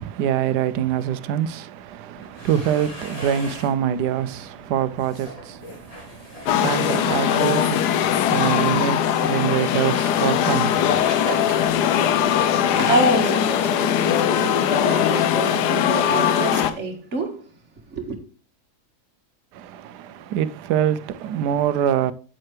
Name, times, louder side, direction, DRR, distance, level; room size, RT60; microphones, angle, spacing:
voice 1, 0.0-11.0 19.5-22.1, right 9 dB, 85° right, 1.2 m, -25 dB
sound 1, 2.1-12.7, equal, 20° left, 2.8 m, -39 dB
sound 2, 6.5-16.7, left 9 dB, 80° left, 1.3 m, -20 dB
voice 2, 12.8-17.5 17.9-18.2, right 2 dB, 45° right, 1.9 m, -27 dB
8.6 x 7.8 x 3.3 m
omnidirectional pair, 1.7 m